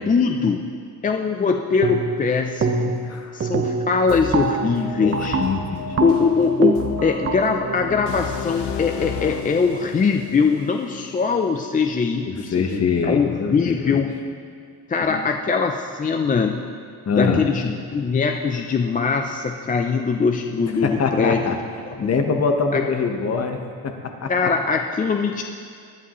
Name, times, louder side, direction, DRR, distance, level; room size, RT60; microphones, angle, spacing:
voice 1, 0.1-0.6 1.0-3.1 3.3-5.4 6.0-14.2 14.9-16.6 17.1-21.6 22.0-22.1 22.7-22.8 24.3-25.4, left 5 dB, 20° left, 4 dB, 0.4 m, -22 dB
sound 1, 1.8-2.3 2.6-3.1 3.4-9.2, right 4 dB, 35° right, 0.9 m, -25 dB
voice 2, 3.0-3.4 5.0-6.0 12.3-14.0 15.1-15.2 17.1-17.4 20.8-21.6 22.0-24.5, left 5 dB, 40° left, 5 dB, 1.1 m, -24 dB
sound 2, 4.1-12.0, left 7 dB, 80° left, 1.0 m, -33 dB
19.5 x 11.0 x 3.0 m, 2.2 s
cardioid pair, 140°, 41 cm